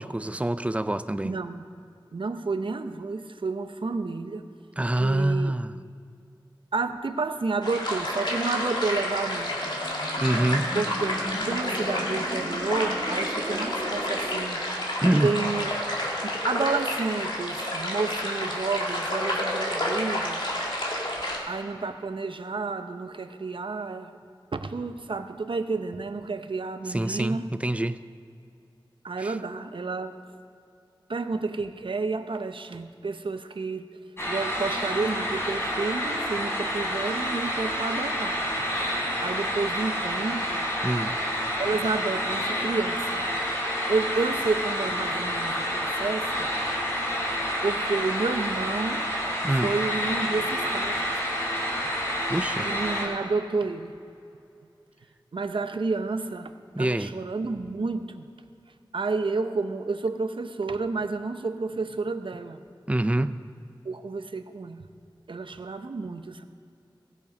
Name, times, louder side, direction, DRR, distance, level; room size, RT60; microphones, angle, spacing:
voice 1, 0.0-1.4 4.8-5.8 10.2-10.8 15.0-15.3 26.9-28.0 29.2-29.4 40.8-41.2 49.4-49.7 52.3-52.7 56.8-57.1 62.9-63.4, right 1 dB, 15° right, 13 dB, 0.4 m, -26 dB
voice 2, 1.2-1.6 2.1-4.4 5.0-5.5 6.7-9.6 10.7-14.6 15.2-15.7 16.2-20.4 21.5-24.2 24.5-27.5 29.0-30.1 31.1-33.9 34.3-38.7 39.2-40.6 41.6-43.2 43.9-46.5 47.6-49.1 49.6-51.2 52.6-53.9 55.3-56.5 56.8-58.3 58.9-62.6 63.8-64.9 65.3-66.4, right 3 dB, 75° right, 9 dB, 0.7 m, -30 dB
sound 1, 7.6-21.4, left 1 dB, 65° left, 2.2 m, -29 dB
sound 2, 9.0-14.5, right 1 dB, 55° right, 2.1 m, -38 dB
sound 3, 34.2-53.1, equal, 30° left, 3.5 m, -29 dB
16.5 x 7.2 x 5.3 m, 2.5 s
wide cardioid pair, 60°, 9 cm